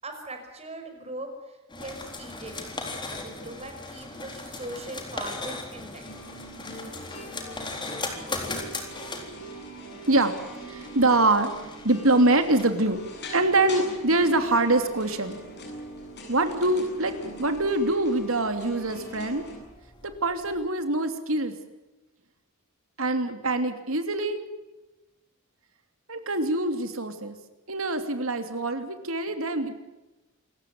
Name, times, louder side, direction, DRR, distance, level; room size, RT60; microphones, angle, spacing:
voice 1, 0.0-2.7 3.0-6.0, right 1 dB, 30° right, 5 dB, 5.5 m, -40 dB
sound 1, 1.7-20.6, left 3 dB, 20° left, 3.8 m, -40 dB
sound 2, 6.0-19.6, right 1 dB, 55° left, 7.9 m, -42 dB
voice 2, 10.1-10.4 10.7-11.5 11.8-13.0 13.3-15.4 16.3-19.4 20.0-21.5 23.0-24.4 26.1-27.3 27.7-29.7, right 2 dB, 75° right, 8 dB, 2.9 m, -24 dB
27.5 x 15.0 x 9.2 m, 1.1 s
head